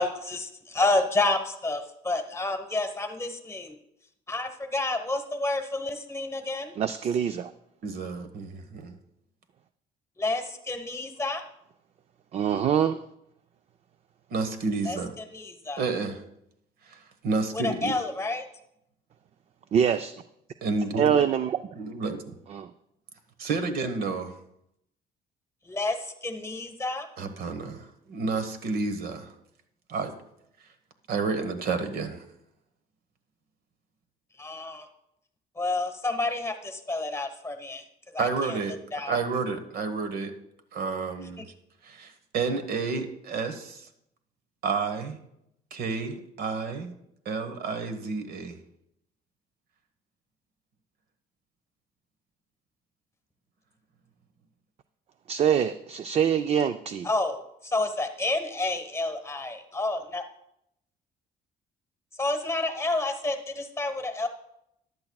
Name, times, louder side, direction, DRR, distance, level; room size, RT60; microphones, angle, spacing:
voice 1, 0.0-3.7 4.3-6.7 10.2-11.4 14.9-15.8 17.5-18.4 25.6-27.1 34.4-34.9 35.6-37.8 38.1-38.6 38.9-39.2 41.4-41.5 57.0-60.2 62.2-64.3, left 2 dB, 15° left, 7 dB, 1.1 m, -29 dB
voice 2, 6.8-7.5 12.3-13.0 19.7-20.1 21.0-21.6 22.5-22.7 55.3-57.1, right 8 dB, 40° right, 11 dB, 0.4 m, -24 dB
voice 3, 7.8-9.0 14.3-15.1 15.8-16.2 16.8-17.9 20.6-21.2 21.8-22.3 23.4-24.3 27.2-29.3 29.9-30.1 31.1-32.2 38.2-38.8 39.1-40.3 40.7-41.4 41.8-43.9 44.6-45.2 45.7-46.9 47.2-48.6, right 4 dB, 65° right, 8 dB, 1.2 m, -30 dB
14.5 x 10.5 x 2.3 m, 0.79 s
cardioid pair, 110°, 17 cm